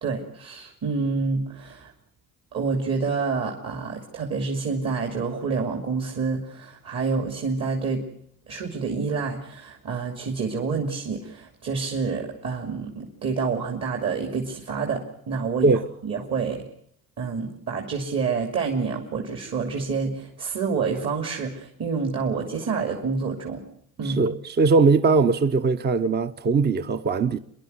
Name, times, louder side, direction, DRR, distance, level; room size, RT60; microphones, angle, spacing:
voice 1, 0.0-1.9 2.5-8.0 8.5-16.6 17.2-23.6 24.0-24.2, right 5 dB, 45° right, 3.1 m, -28 dB
voice 2, 24.0-27.4, right 4 dB, 30° right, 0.9 m, -20 dB
27.0 x 11.0 x 9.7 m
cardioid pair, 120°, 34 cm